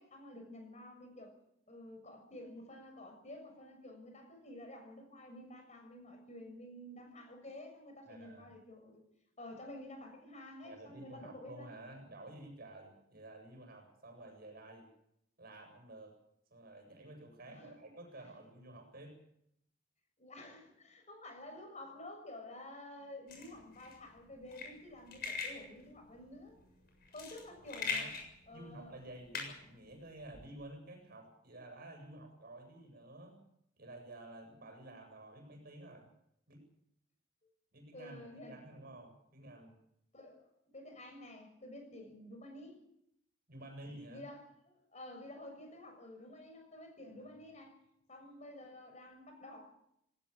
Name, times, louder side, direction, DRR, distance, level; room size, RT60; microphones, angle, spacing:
voice 1, 0.0-1.3 1.7-9.0 9.4-11.7 17.5-17.8 20.2-26.6 27.1-28.1 28.5-29.0 37.9-38.6 40.1-42.8 44.1-47.7 48.1-49.7, left 1 dB, 35° left, 4 dB, 6.7 m, -51 dB
voice 2, 8.1-8.5 10.6-14.9 15.4-16.1 16.5-19.2 27.7-28.2 28.5-33.4 33.8-36.1 36.5-36.6 37.7-39.8 43.5-44.3, right 1 dB, 50° right, 4 dB, 7.6 m, -51 dB
sound 1, 23.3-30.5, left 5 dB, 55° left, 7.2 m, -43 dB
19.0 x 18.5 x 8.6 m, 0.76 s
head